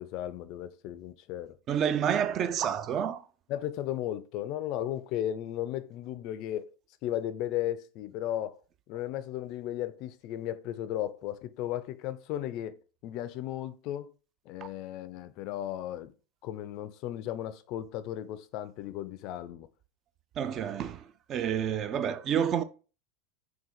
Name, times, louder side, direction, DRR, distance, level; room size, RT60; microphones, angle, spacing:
voice 1, 0.0-1.6 3.5-6.7 7.0-8.6 8.9-12.8 13.0-14.1 14.5-16.1 16.4-19.7, left 12 dB, 50° left, 0.4 m, -35 dB
voice 2, 1.7-3.3 20.4-22.6, right 8 dB, 35° right, 0.3 m, -29 dB
3.8 x 2.2 x 4.2 m
supercardioid pair, 135°, 0 cm